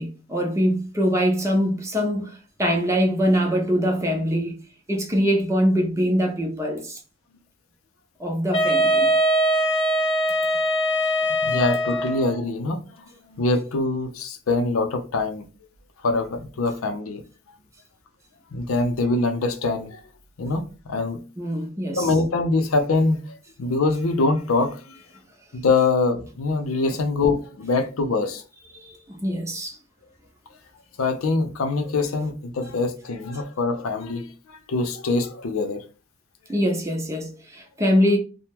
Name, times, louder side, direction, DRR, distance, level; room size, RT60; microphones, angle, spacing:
voice 1, 0.0-4.5 4.9-7.0 8.2-9.1 21.4-22.1 26.9-27.0 28.7-29.8 36.5-38.2, equal, 15° right, 0.6 m, -23 dB
Wind instrument woodwind instrument, 8.5-12.4, equal, 25° left, 0.5 m, -22 dB
voice 2, 11.4-12.8 13.3-15.5 16.0-17.2 18.5-20.0 20.4-21.2 21.9-25.0 25.5-28.4 31.0-35.8, left 3 dB, 90° left, 0.5 m, -24 dB
2.8 x 2.1 x 3.4 m
head